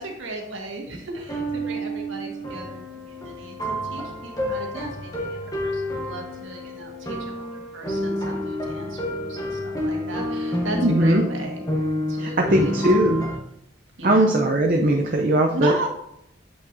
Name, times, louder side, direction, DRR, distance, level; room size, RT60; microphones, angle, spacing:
voice 1, 0.0-11.6 12.1-12.7 13.1-13.2 14.0-14.4 15.5-15.9, right 1 dB, 80° right, 1 dB, 1.6 m, -35 dB
sound 1, 1.1-13.4, equal, 20° left, 1.0 m, -29 dB
voice 2, 10.8-11.2 12.2-13.3 14.0-15.7, right 1 dB, 45° right, 1 dB, 0.6 m, -19 dB
8.1 x 5.8 x 2.7 m, 0.76 s
head